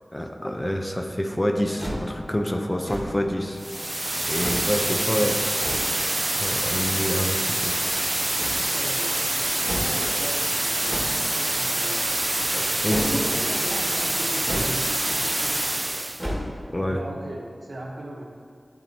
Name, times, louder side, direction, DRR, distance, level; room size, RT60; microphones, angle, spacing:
voice 1, 0.1-3.6 4.3-5.3 5.8-7.8 12.5-13.2 16.7-17.0, equal, 20° left, 4 dB, 0.6 m, -27 dB
Brass instrument, 1.5-7.6, left 2 dB, 70° left, 0.9 m, -47 dB
sound 1, 1.8-2.2 2.8-3.3 4.4-4.7 5.6-5.9 8.3-8.8 9.6-10.0 10.9-11.3 12.9-13.2 14.4-14.8 15.2-15.3 16.2-16.6, equal, ahead, 1.9 m, -31 dB
sound 2, 3.6-16.2, right 1 dB, 25° right, 0.4 m, -26 dB
voice 2, 8.7-9.3 9.6-11.0 11.3-12.0 12.9-16.4 16.9-18.3, right 1 dB, 75° right, -2 dB, 1.2 m, -37 dB
12.5 x 4.2 x 2.9 m, 2.1 s
wide cardioid pair, 60°, 0 cm